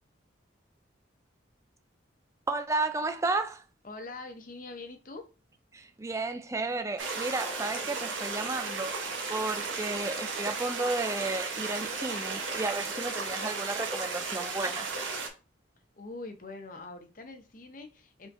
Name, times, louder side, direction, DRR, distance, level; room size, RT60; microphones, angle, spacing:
voice 1, 2.5-3.6 5.7-8.9 9.3-14.9, right 3 dB, 15° right, 0.3 m, -32 dB
voice 2, 3.8-5.2 15.9-18.3, left 3 dB, 45° left, 0.7 m, -44 dB
sound 1, 7.0-15.3, right 4 dB, 80° right, 1.0 m, -35 dB
4.7 x 4.0 x 2.6 m
head